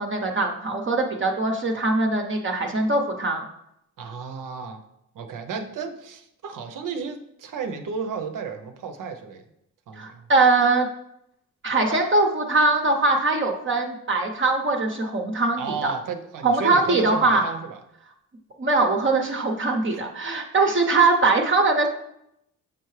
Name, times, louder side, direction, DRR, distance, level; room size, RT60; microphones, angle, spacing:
voice 1, 0.0-3.4 10.0-10.9 11.6-15.9 16.4-17.4 18.6-21.9, right 3 dB, 35° right, 2 dB, 0.8 m, -21 dB
voice 2, 4.0-4.8 5.1-9.4 9.9-10.3 11.8-12.0 15.6-17.8 19.9-20.0, right 5 dB, 70° right, 6 dB, 0.8 m, -33 dB
7.3 x 4.6 x 3.2 m, 0.80 s
cardioid pair, 80°, 33 cm